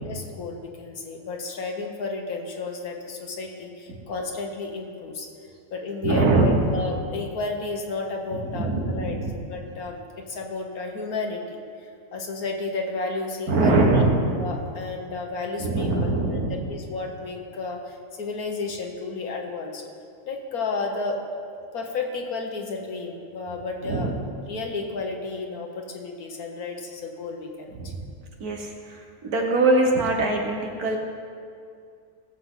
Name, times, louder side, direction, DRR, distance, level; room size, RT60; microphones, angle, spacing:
voice 1, 0.0-5.3 5.7-9.2 9.5-10.0 10.3-11.6 12.1-13.8 14.4-19.8 20.3-21.2 21.7-24.1 24.5-27.7, left 3 dB, 75° left, 2 dB, 1.7 m, -32 dB
voice 2, 6.0-6.7 8.5-9.4 13.5-14.4 15.6-16.7 23.8-24.2 27.8-28.0 28.4-31.0, right 2 dB, 85° right, 1 dB, 1.9 m, -22 dB
17.5 x 7.7 x 3.9 m, 2.3 s
omnidirectional pair, 1.6 m